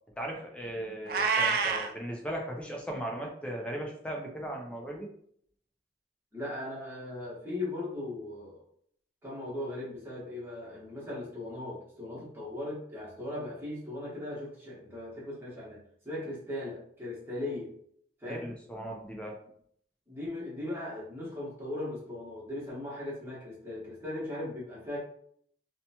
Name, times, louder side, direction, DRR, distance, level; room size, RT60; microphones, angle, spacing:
voice 1, 0.2-5.1 18.2-19.4, right 1 dB, 5° left, 0 dB, 0.4 m, -37 dB
Meow, 1.1-1.9, right 5 dB, 55° right, 0.4 m, -27 dB
voice 2, 6.3-8.6 9.2-15.8 16.0-17.7 18.2-18.5 20.1-25.0, left 1 dB, 15° right, -8 dB, 1.1 m, -38 dB
2.8 x 2.2 x 2.8 m, 0.65 s
head